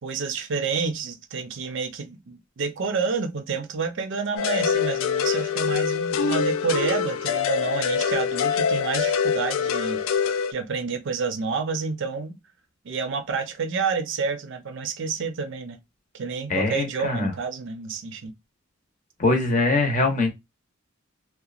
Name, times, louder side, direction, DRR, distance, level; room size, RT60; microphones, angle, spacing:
voice 1, 0.0-12.4 12.8-15.8 16.1-18.3, right 5 dB, 65° right, 0.5 m, -29 dB
sound 1, 4.4-10.5, left 7 dB, 85° left, 0.4 m, -24 dB
voice 2, 16.5-17.3 19.2-20.3, left 2 dB, 40° left, 0.7 m, -22 dB
2.9 x 2.1 x 2.3 m
head